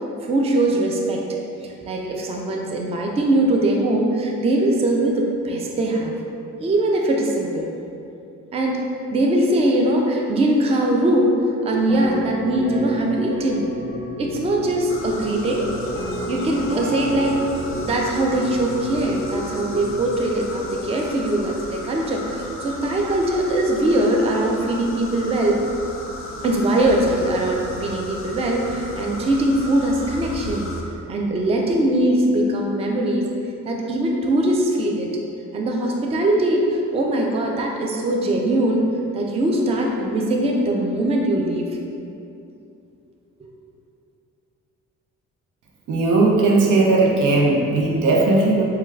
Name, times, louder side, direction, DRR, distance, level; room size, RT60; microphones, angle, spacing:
voice 1, 0.2-1.2 1.6-6.1 6.6-7.7 8.5-8.8 9.1-11.4 11.6-13.6 14.2-15.7 16.3-17.4 17.8-25.6 26.4-30.7 31.1-33.2 33.7-35.1 35.5-38.9 39.1-41.6 43.4-43.5, right 1 dB, 20° right, 0 dB, 0.3 m, -21 dB
sound 1, 11.7-20.0, equal, 10° left, 0.7 m, -31 dB
sound 2, 14.9-30.8, left 1 dB, 45° left, 0.4 m, -35 dB
voice 2, 45.9-48.6, right 2 dB, 85° right, -2 dB, 0.6 m, -17 dB
4.5 x 2.2 x 2.3 m, 2.6 s
cardioid pair, 90°, 30 cm